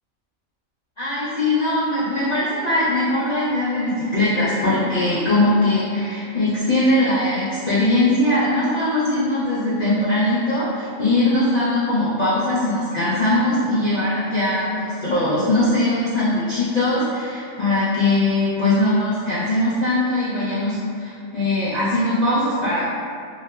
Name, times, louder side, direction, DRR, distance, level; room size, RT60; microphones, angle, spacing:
voice 1, 1.0-22.9, left 1 dB, 70° left, -13 dB, 0.4 m, -20 dB
3.1 x 2.1 x 2.2 m, 2.4 s
omnidirectional pair, 1.5 m